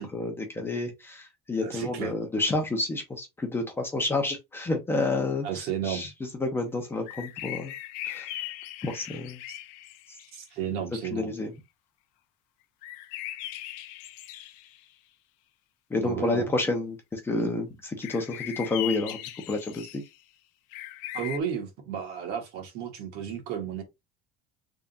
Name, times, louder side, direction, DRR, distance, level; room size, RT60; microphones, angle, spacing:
voice 1, 0.0-6.1 6.4-7.7 8.0-8.3 8.8-9.4 11.1-11.5 15.9-19.2 19.5-20.0, left 2 dB, 10° left, 0.7 m, -29 dB
voice 2, 1.6-2.1 5.4-6.1 9.5-9.6 10.3-11.3 16.0-16.5 21.1-23.8, right 8 dB, 55° right, 1.4 m, -33 dB
sound 1, 7.1-10.4 12.8-14.8 18.0-20.2 20.7-21.4, left 14 dB, 75° left, 0.6 m, -39 dB
3.5 x 2.5 x 3.9 m
cardioid pair, 160°, 20 cm